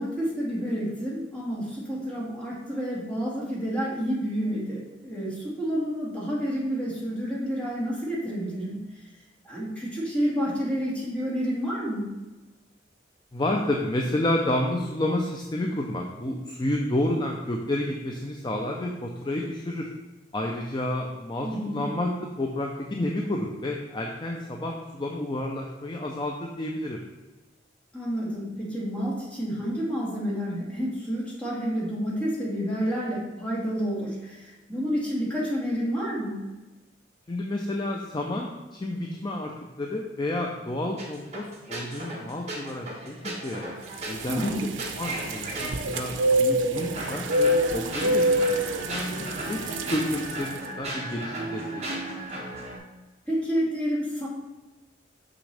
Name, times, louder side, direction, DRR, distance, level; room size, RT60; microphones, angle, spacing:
voice 1, 0.0-4.8 5.0-8.8 9.4-12.1 21.4-21.8 27.9-36.4 44.3-44.6 53.3-54.3, equal, 5° left, -7 dB, 2.0 m, -29 dB
voice 2, 13.3-19.9 20.3-22.1 22.4-27.0 37.3-39.5 39.8-43.8 44.1-44.7 45.0-48.5 48.9-51.6 51.9-52.0, left 1 dB, 25° left, 1 dB, 0.5 m, -30 dB
sound 1, 41.0-46.2 46.7-52.8, right 1 dB, 35° right, 1.2 m, -35 dB
sound 2, 43.9-50.6, right 1 dB, 85° right, 0.5 m, -27 dB
6.2 x 6.1 x 3.3 m, 1.1 s
head